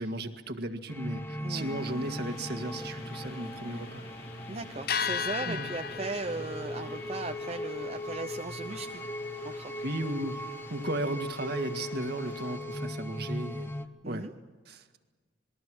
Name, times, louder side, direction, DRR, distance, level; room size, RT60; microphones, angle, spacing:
voice 1, 0.0-4.0 5.5-5.7 9.8-10.4 10.7-13.7 14.1-14.3 14.7-15.0, right 1 dB, 55° right, 7 dB, 1.8 m, -35 dB
sound 1, 0.9-13.9, left 1 dB, 10° left, 1.0 m, -39 dB
voice 2, 1.4-1.7 4.5-9.0 9.4-9.7 14.0-14.3, right 2 dB, 30° right, 4 dB, 0.8 m, -37 dB
all.souls.day.church.bell, 1.5-12.6, left 6 dB, 50° left, 0.8 m, -41 dB
sound 2, 2.2-7.3, left 3 dB, 70° left, 4.6 m, -54 dB
27.0 x 21.5 x 6.3 m, 1.3 s
head